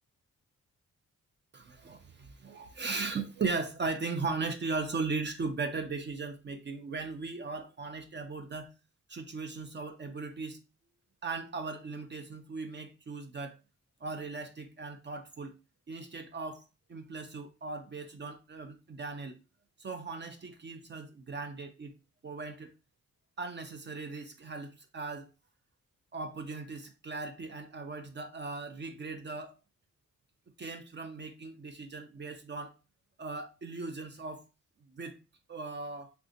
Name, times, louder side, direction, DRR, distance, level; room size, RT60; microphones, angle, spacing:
voice 1, 1.5-8.7 9.1-10.6 11.2-13.5 14.0-15.5 15.9-16.6 16.9-19.4 19.8-21.9 22.2-22.7 23.4-25.3 26.1-29.6 30.6-32.7 33.2-34.4 34.9-35.2 35.5-36.1, right 4 dB, 35° right, 0.5 m, -38 dB
3.5 x 2.7 x 2.5 m
cardioid pair, 90°, 30 cm